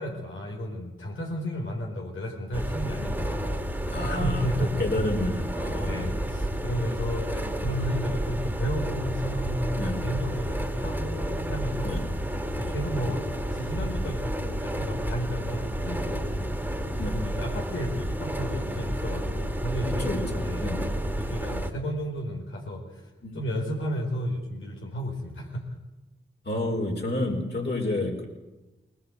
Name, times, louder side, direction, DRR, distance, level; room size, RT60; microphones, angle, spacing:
voice 1, 0.0-5.0 5.8-12.0 12.6-16.4 17.1-23.0 23.3-25.7, equal, 85° left, 1 dB, 4.7 m, -33 dB
sound 1, 2.5-21.7, equal, 10° right, 2.8 m, -30 dB
voice 2, 3.9-6.2 9.8-10.0 11.8-12.1 12.6-12.7 17.0-17.2 19.8-20.8 23.2-23.4 26.4-28.3, left 1 dB, 55° left, 1 dB, 5.1 m, -30 dB
20.0 x 19.5 x 8.2 m, 1.1 s
cardioid pair, 45°, 20 cm